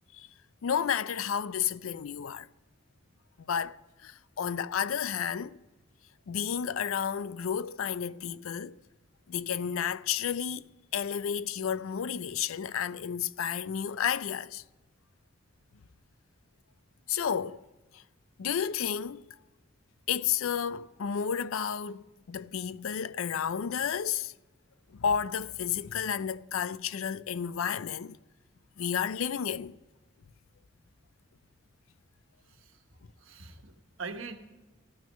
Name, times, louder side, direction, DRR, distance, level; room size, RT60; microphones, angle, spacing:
voice 1, 0.6-2.5 3.4-3.8 4.0-5.6 6.3-8.8 9.3-10.6 10.9-14.6 17.1-17.7 17.9-18.0 18.4-19.2 20.1-24.3 24.9-28.2 28.8-29.8, left 8 dB, 90° left, 0.4 m, -31 dB
voice 2, 32.5-32.8 33.2-34.4, right 4 dB, 85° right, 1.3 m, -43 dB
14.0 x 6.1 x 8.6 m
head